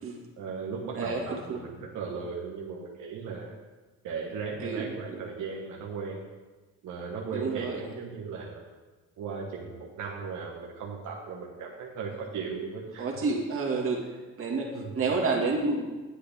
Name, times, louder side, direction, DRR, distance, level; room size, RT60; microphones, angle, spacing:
voice 1, 0.4-3.5 4.0-6.2 6.8-8.6 9.2-13.1 14.7-15.0, right 5 dB, 80° right, -2 dB, 1.3 m, -37 dB
voice 2, 1.0-1.6 4.6-4.8 5.1-5.2 7.3-7.8 13.0-14.1 14.4-15.8, right 3 dB, 45° right, -1 dB, 2.1 m, -29 dB
10.0 x 7.8 x 3.5 m, 1.2 s
cardioid pair, 90°, 30 cm